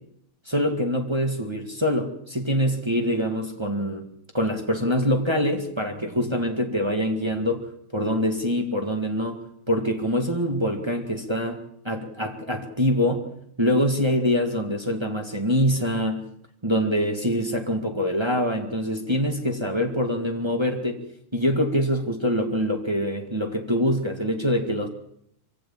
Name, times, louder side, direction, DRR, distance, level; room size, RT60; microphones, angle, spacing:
voice 1, 0.5-4.0 4.3-7.6 7.9-9.4 9.7-11.6 11.8-13.3 13.6-16.2 16.6-21.0 21.3-24.9, equal, 10° right, 3 dB, 1.3 m, -24 dB
24.0 x 16.5 x 7.3 m, 0.72 s
omnidirectional pair, 3.4 m